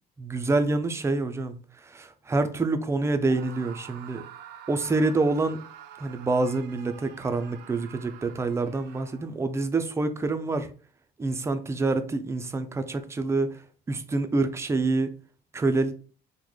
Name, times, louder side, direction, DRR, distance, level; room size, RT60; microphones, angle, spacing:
voice 1, 0.2-1.6 1.8-4.2 4.7-5.6 6.0-10.7 11.2-13.5 13.9-15.1 15.5-15.9, right 3 dB, 15° right, 0.4 m, -26 dB
Screaming, 3.2-9.5, right 9 dB, 85° right, 0.5 m, -47 dB
3.1 x 2.1 x 3.7 m
cardioid pair, 110°, 17 cm